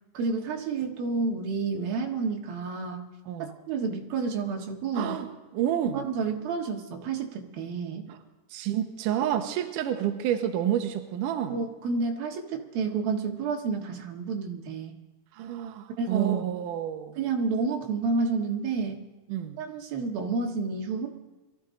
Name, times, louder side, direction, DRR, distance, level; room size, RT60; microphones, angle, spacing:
voice 1, 0.1-3.1 3.4-5.2 5.9-8.0 11.5-15.0 16.0-16.4 17.2-19.0 19.6-21.1, right 4 dB, 60° right, 1 dB, 3.2 m, -30 dB
voice 2, 4.9-5.3 5.5-6.0 8.1-8.2 8.5-11.6 15.3-17.2 19.3-19.6, right 10 dB, 85° right, 5 dB, 1.9 m, -29 dB
23.0 x 14.5 x 3.8 m, 1.2 s
omnidirectional pair, 5.3 m